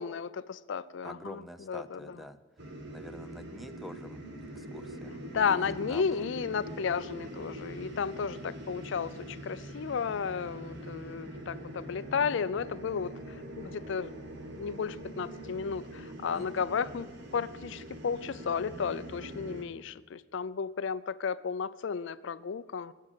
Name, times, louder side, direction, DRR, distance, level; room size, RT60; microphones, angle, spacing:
voice 1, 0.0-1.4 1.7-2.0 5.3-14.1 14.6-17.1 17.3-22.9, left 6 dB, 65° left, 16 dB, 0.4 m, -33 dB
voice 2, 1.0-2.4 2.9-4.2 4.5-6.3 16.3-16.7, equal, ahead, 10 dB, 0.6 m, -46 dB
sound 1, 2.6-19.6, right 1 dB, 65° right, 1.8 m, -43 dB
18.0 x 7.4 x 7.5 m, 1.4 s
head